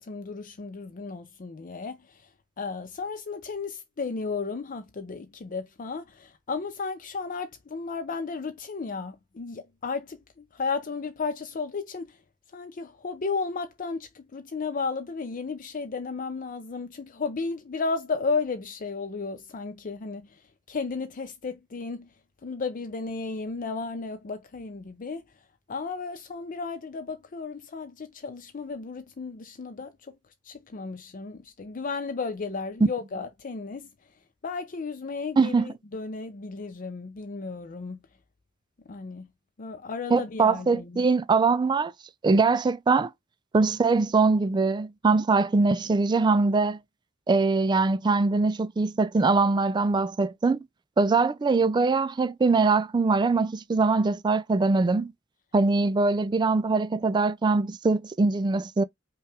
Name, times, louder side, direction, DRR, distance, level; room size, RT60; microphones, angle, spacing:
voice 1, 0.0-2.2 2.6-12.2 12.5-20.3 20.7-22.1 22.4-25.2 25.7-29.9 30.5-33.9 34.4-38.0 38.9-39.3 39.6-41.0, left 4 dB, 45° left, 0.5 m, -34 dB
voice 2, 35.4-35.7 40.1-41.9 42.2-43.1 43.5-46.8 47.3-50.6 51.0-55.1 55.5-58.8, right 3 dB, 20° right, 0.3 m, -22 dB
5.5 x 2.3 x 3.2 m
head